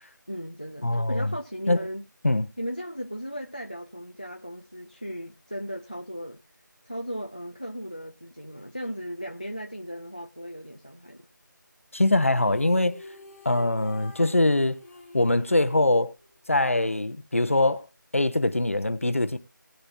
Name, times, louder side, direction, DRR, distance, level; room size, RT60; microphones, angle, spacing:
voice 1, 0.3-2.1 2.6-6.4 6.8-11.3, equal, 25° left, 0.5 m, -36 dB
voice 2, 0.8-1.3 1.7-1.8 2.2-2.5 11.9-13.0 13.4-14.8 15.1-16.1 16.5-17.9 18.1-19.4, left 2 dB, 40° left, 0.8 m, -23 dB
sound 1, 12.4-16.6, left 2 dB, 5° left, 0.8 m, -48 dB
19.5 x 7.1 x 2.6 m
figure-of-eight pair, 180°, 11 cm